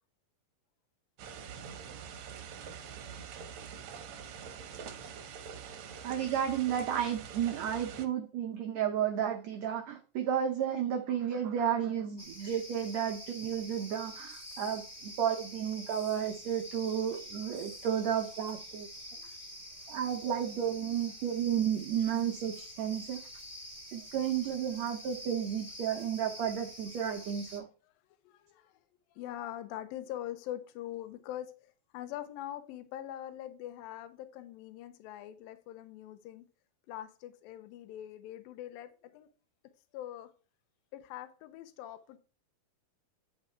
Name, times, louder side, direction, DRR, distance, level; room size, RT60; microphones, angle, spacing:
sound 1, 1.2-8.1, right 7 dB, 70° right, 1.8 m, -45 dB
voice 1, 6.0-18.9 19.9-23.2 23.9-27.7, right 9 dB, 85° right, 1.5 m, -32 dB
sound 2, 12.2-27.6, equal, 25° left, 1.0 m, -47 dB
voice 2, 28.2-28.8 29.1-36.4 36.9-39.3 39.9-40.3 40.9-42.2, left 12 dB, 85° left, 2.4 m, -43 dB
9.7 x 4.6 x 4.4 m
omnidirectional pair, 4.1 m